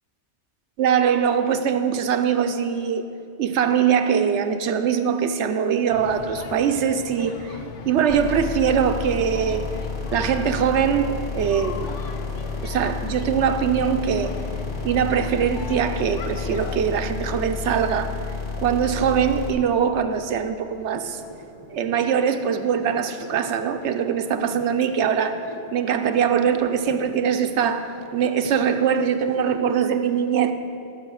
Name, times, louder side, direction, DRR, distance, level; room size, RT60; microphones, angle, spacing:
voice 1, 0.8-3.0 3.4-7.6 7.9-9.7 10.1-11.9 12.6-14.3 14.8-18.1 18.6-21.2 21.7-25.4 25.7-30.5, right 7 dB, 75° right, 8 dB, 0.9 m, -22 dB
sound 1, 5.9-16.8, left 5 dB, 80° left, 1.1 m, -38 dB
sound 2, 8.1-19.5, left 4 dB, 60° left, 2.0 m, -31 dB
sound 3, 20.7-29.9, right 2 dB, 30° right, 0.7 m, -43 dB
13.5 x 6.0 x 6.3 m, 2.6 s
omnidirectional pair, 1.2 m